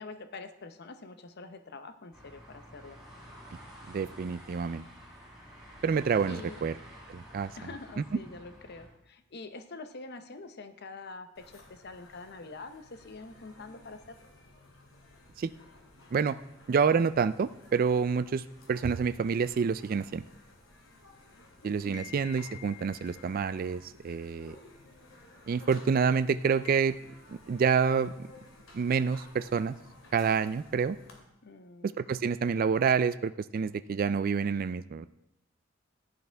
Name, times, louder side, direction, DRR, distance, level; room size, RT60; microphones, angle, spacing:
voice 1, 0.0-3.0 6.3-6.6 7.6-14.2 21.6-22.2 31.4-31.9, left 3 dB, 55° left, 9 dB, 0.8 m, -45 dB
sound 1, 2.1-8.9, equal, 5° right, 4.5 m, -50 dB
voice 2, 3.9-4.8 5.8-6.8 7.1-7.5 15.4-15.5 16.1-16.4 16.7-20.2 21.6-24.6 25.5-27.0 27.3-28.3 28.7-29.8 30.1-31.0 31.8-35.1, right 6 dB, 45° right, 13 dB, 0.3 m, -28 dB
sound 2, 11.3-31.2, left 3 dB, 85° left, 2.4 m, -54 dB
15.0 x 11.0 x 3.4 m, 0.81 s
head